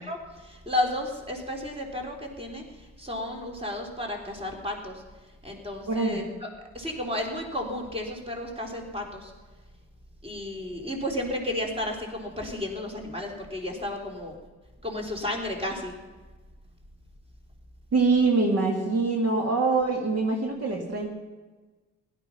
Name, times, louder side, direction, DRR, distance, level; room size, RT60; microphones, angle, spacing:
voice 1, 0.0-2.6 3.0-5.0 5.4-6.5 6.7-9.3 10.2-14.3 14.8-15.9, left 1 dB, 20° right, 1 dB, 3.6 m, -32 dB
voice 2, 5.9-6.3 17.9-21.1, right 3 dB, 55° right, 1 dB, 2.3 m, -24 dB
16.5 x 12.0 x 5.8 m, 1.3 s
cardioid pair, 90°, 30 cm